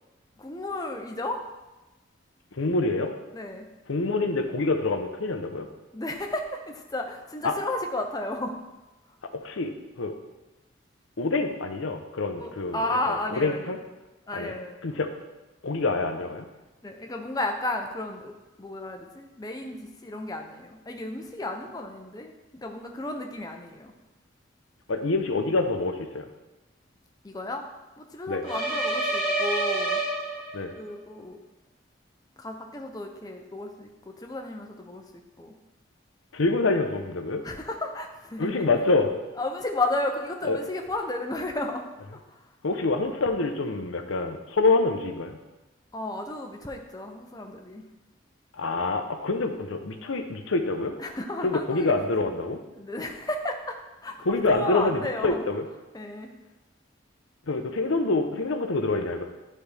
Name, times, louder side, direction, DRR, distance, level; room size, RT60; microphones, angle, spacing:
voice 1, 0.4-1.4 3.3-3.7 5.9-8.6 12.4-13.6 14.3-14.9 16.8-18.3 18.6-23.9 27.2-27.6 28.0-30.0 30.8-31.4 32.4-33.9 34.2-35.0 35.4-35.5 37.4-38.6 39.4-41.9 45.9-47.8 51.0-51.9 52.7-53.8 54.0-55.4 55.9-56.3, left 2 dB, 20° left, 3 dB, 0.7 m, -33 dB
voice 2, 2.6-3.1 3.9-5.7 7.4-7.5 9.3-10.1 11.2-12.8 13.1-13.8 14.3-14.5 14.8-15.1 15.6-16.5 24.9-26.3 28.3-28.4 30.5-30.7 36.3-37.4 38.4-39.1 40.5-40.6 42.6-45.4 48.6-50.9 51.4-52.6 54.3-55.6 57.5-59.2, left 3 dB, 90° left, 6 dB, 0.8 m, -26 dB
sound 1, 28.4-30.8, right 2 dB, 25° right, 1.8 m, -27 dB
11.5 x 4.3 x 3.4 m, 1.1 s
head